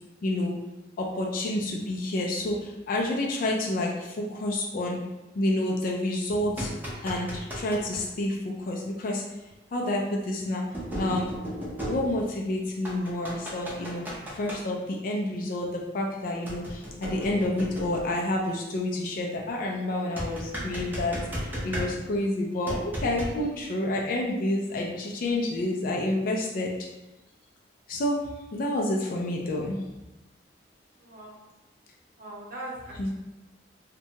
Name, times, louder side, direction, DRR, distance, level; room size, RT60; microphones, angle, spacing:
voice 1, 0.2-0.5 1.0-5.0 5.4-6.7 7.0-9.2 9.7-10.6 11.0-11.3 11.8-14.1 14.3-26.7 27.9-28.2 28.5-29.8 33.0-33.1, left 1 dB, 50° left, -1 dB, 0.3 m, -29 dB
sound 1, 6.3-8.0 9.5-9.6 10.7-12.5 12.8-14.6 16.5-18.2 20.2-22.2 22.7-23.4, equal, 10° right, 0.5 m, -35 dB
voice 2, 31.0-31.5 32.2-33.1, right 1 dB, 55° right, -3 dB, 0.7 m, -40 dB
2.7 x 2.2 x 2.7 m, 1.0 s
head